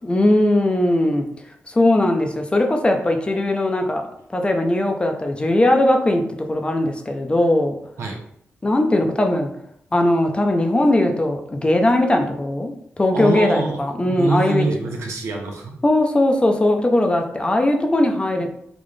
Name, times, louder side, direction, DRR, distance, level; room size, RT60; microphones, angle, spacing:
voice 1, 0.0-1.2 1.7-4.1 4.3-6.2 6.5-7.8 8.6-9.5 9.9-14.7 15.8-18.5, left 1 dB, 25° left, 4 dB, 0.6 m, -19 dB
voice 2, 13.1-15.7, right 3 dB, 80° right, 1 dB, 0.8 m, -25 dB
4.0 x 2.5 x 3.2 m, 0.70 s
cardioid pair, 75°, 4 cm